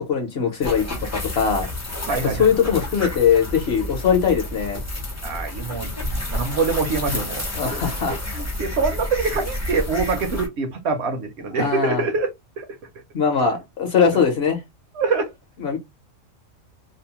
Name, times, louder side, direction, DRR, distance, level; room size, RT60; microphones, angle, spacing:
voice 1, 0.1-1.7 2.4-4.8 7.5-8.2 11.6-12.0 13.1-14.6 15.6-15.8, left 6 dB, 55° left, 0.9 m, -21 dB
sound 1, 0.6-10.5, left 1 dB, 20° left, 0.4 m, -30 dB
voice 2, 2.1-2.5 5.2-7.8 8.3-12.3 12.6-12.7 14.9-15.3, right 4 dB, 65° right, 0.8 m, -25 dB
2.7 x 2.0 x 2.8 m
omnidirectional pair, 1.4 m